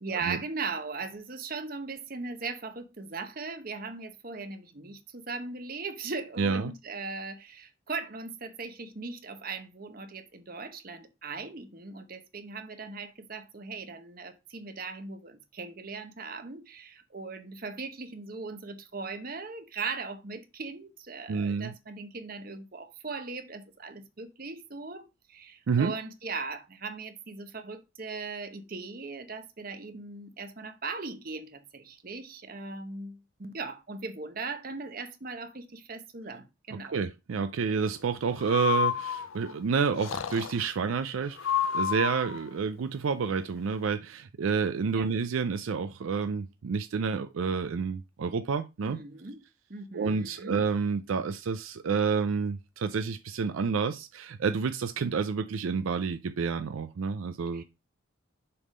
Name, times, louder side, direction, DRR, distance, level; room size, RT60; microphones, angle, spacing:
voice 1, 0.0-37.0 44.9-45.1 48.8-49.4 49.7-50.6 57.5-57.6, right 4 dB, 45° right, 0.9 m, -39 dB
voice 2, 6.4-6.7 21.3-21.7 25.7-25.9 36.9-49.0 49.9-57.6, right 5 dB, 80° right, 0.4 m, -29 dB
Breathing, 38.4-39.5 40.0-40.7 41.4-42.4, left 7 dB, 85° left, 0.6 m, -30 dB
6.9 x 3.6 x 5.0 m
head